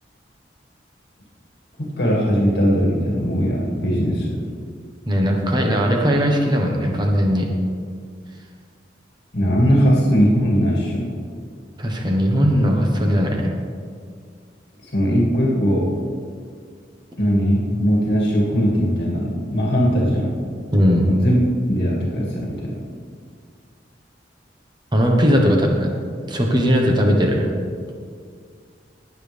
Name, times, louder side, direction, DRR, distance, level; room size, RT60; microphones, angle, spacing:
voice 1, 1.8-4.4 9.3-11.1 14.9-15.9 17.2-20.3 21.1-21.4 21.7-22.5, equal, 65° left, -3 dB, 2.2 m, -19 dB
voice 2, 5.1-7.5 11.8-13.5 20.7-21.0 24.9-27.5, equal, 25° right, 1 dB, 1.3 m, -18 dB
19.0 x 7.3 x 3.5 m, 2.1 s
head